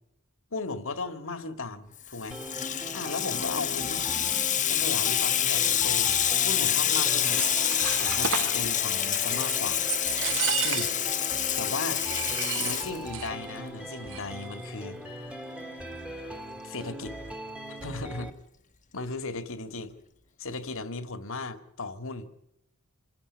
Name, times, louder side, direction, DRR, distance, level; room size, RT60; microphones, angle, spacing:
voice 1, 0.5-2.4 2.9-4.0 4.7-6.1 6.4-7.4 8.0-9.8 10.6-10.9 11.6-15.0 16.6-17.1 17.7-18.3 18.9-20.0 20.4-22.3, left 3 dB, 65° left, 10 dB, 2.2 m, -36 dB
Water tap faucet / Sink (filling or washing), 2.0-13.5, left 10 dB, 35° left, 1.3 m, -27 dB
sound 1, 2.3-18.3, right 1 dB, 5° right, 2.1 m, -41 dB
sound 2, 7.0-8.6 9.1-9.6 9.9-11.1 11.4-11.5 11.9-13.3 13.6-13.7 13.9-14.4, right 7 dB, 65° right, 2.1 m, -32 dB
27.0 x 13.5 x 9.7 m, 0.79 s
head